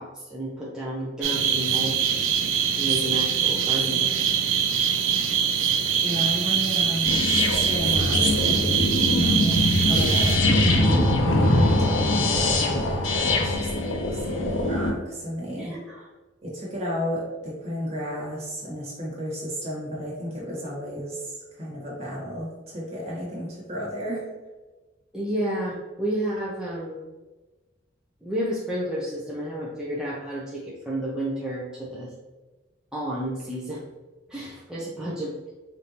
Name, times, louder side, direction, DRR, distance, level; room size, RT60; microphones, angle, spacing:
voice 1, 0.0-2.3 2.8-4.2 15.6-16.0 25.1-27.0 28.2-32.1 32.9-33.8 34.3-35.3, right 1 dB, 5° right, -7 dB, 0.5 m, -31 dB
sound 1, 1.2-10.4, right 8 dB, 90° right, 0.4 m, -23 dB
voice 2, 6.0-8.9 9.1-15.7 16.4-24.2, equal, 35° right, -6 dB, 1.5 m, -32 dB
sound 2, 7.1-14.9, left 2 dB, 80° left, 0.6 m, -22 dB
5.0 x 2.6 x 2.9 m, 1.2 s
head